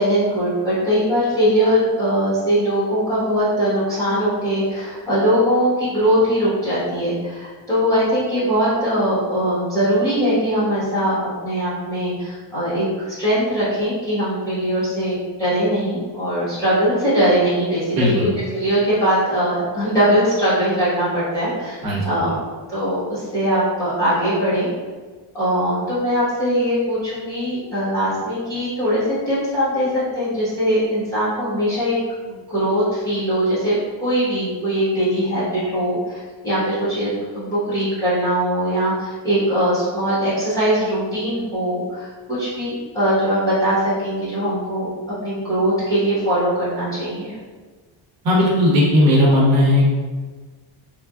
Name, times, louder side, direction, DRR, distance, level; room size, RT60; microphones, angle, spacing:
voice 1, 0.0-21.8 22.0-22.4 22.7-24.7 25.3-32.0 32.5-44.9 45.2-47.4, equal, 5° left, -11 dB, 1.1 m, -21 dB
voice 2, 17.9-18.3 21.8-22.1 48.2-49.9, left 1 dB, 50° right, -4 dB, 0.8 m, -16 dB
3.3 x 2.1 x 2.3 m, 1.4 s
cardioid pair, 175°, 46 cm